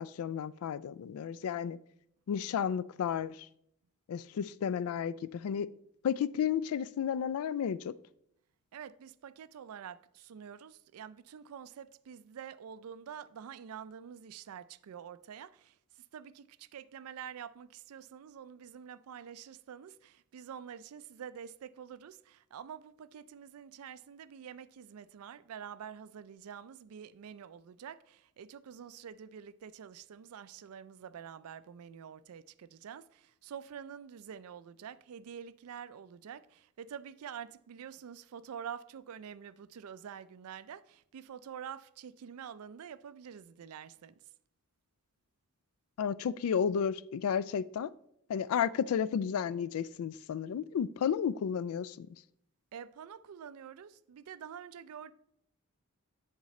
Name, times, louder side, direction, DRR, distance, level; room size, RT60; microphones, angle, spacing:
voice 1, 0.0-1.8 2.3-3.4 4.1-5.7 6.0-7.9 46.0-47.9 48.3-52.1, left 8 dB, 80° left, 0.3 m, -32 dB
voice 2, 8.7-44.1 52.7-55.1, right 8 dB, 80° right, 0.4 m, -47 dB
10.5 x 3.7 x 4.2 m
head